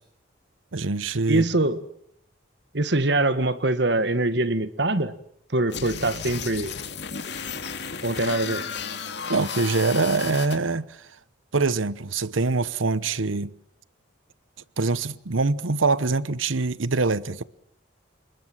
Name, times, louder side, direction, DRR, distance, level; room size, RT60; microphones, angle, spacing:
voice 1, 0.7-1.5 9.3-11.1 11.5-13.5 14.8-17.4, right 3 dB, 85° right, 1.0 m, -24 dB
voice 2, 1.3-1.8 2.7-5.1 5.5-6.7 8.0-8.6, right 2 dB, 60° right, 1.7 m, -23 dB
sound 1, 5.7-10.6, left 6 dB, 60° left, 2.6 m, -33 dB
30.0 x 21.0 x 7.4 m
head